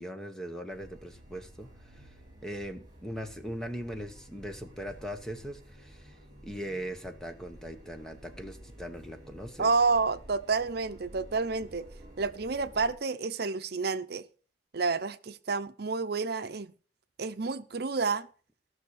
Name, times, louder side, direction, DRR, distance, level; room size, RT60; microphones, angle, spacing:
voice 1, 0.0-1.7 2.4-6.1 6.4-9.7, equal, 5° left, 1.0 m, -40 dB
sound 1, 0.7-13.0, equal, 25° right, 7.1 m, -51 dB
voice 2, 9.6-11.9 12.2-14.2 14.7-16.7 17.2-18.3, right 4 dB, 60° right, 0.7 m, -29 dB
15.5 x 6.4 x 6.5 m
head